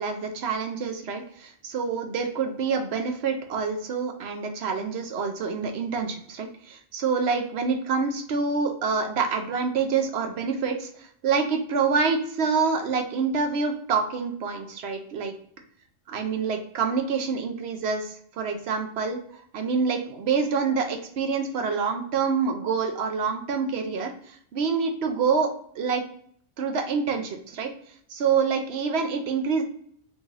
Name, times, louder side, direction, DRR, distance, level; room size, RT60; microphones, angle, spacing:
voice 1, 0.0-15.3 16.1-26.0 26.6-27.7 28.1-29.6, right 5 dB, 65° right, 5 dB, 0.8 m, -27 dB
3.5 x 3.2 x 2.5 m, 0.62 s
omnidirectional pair, 1.3 m